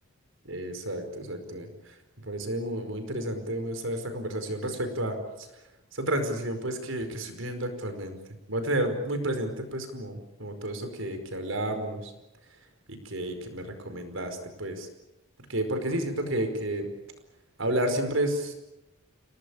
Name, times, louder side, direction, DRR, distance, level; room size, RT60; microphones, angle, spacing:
voice 1, 0.4-1.9 2.2-5.5 5.9-8.2 8.5-12.1 12.9-14.9 15.5-16.9 17.6-18.5, right 1 dB, 70° right, 7 dB, 5.0 m, -31 dB
29.0 x 19.0 x 8.7 m, 0.93 s
head